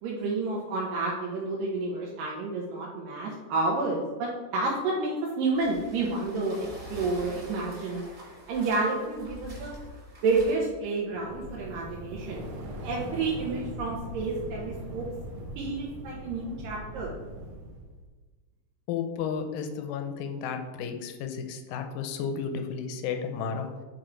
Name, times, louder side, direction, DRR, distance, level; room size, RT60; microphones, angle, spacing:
voice 1, 0.0-8.0 8.5-9.7 10.2-12.4 12.8-15.1 15.6-17.1, right 3 dB, 85° right, -3 dB, 2.5 m, -30 dB
sound 1, 5.5-10.5, equal, 25° right, 2.0 m, -45 dB
sound 2, 11.0-18.0, right 1 dB, 65° right, 2.3 m, -40 dB
voice 2, 18.9-23.7, left 6 dB, 80° left, 6 dB, 2.2 m, -33 dB
7.8 x 3.9 x 4.6 m, 1.3 s
omnidirectional pair, 3.9 m